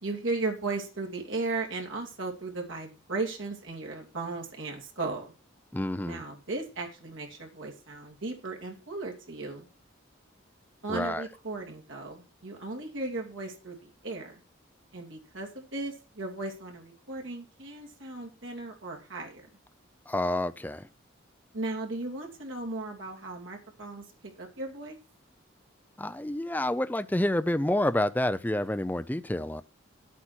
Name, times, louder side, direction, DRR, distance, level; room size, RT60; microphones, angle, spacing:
voice 1, 0.0-5.3 6.0-9.7 10.8-14.4 14.9-19.5 21.5-24.1 24.4-25.0, right 3 dB, 80° right, 2.6 m, -36 dB
voice 2, 5.7-6.2 10.9-11.2 20.1-20.8 26.0-29.6, left 1 dB, 10° left, 0.4 m, -28 dB
10.0 x 8.3 x 4.4 m
head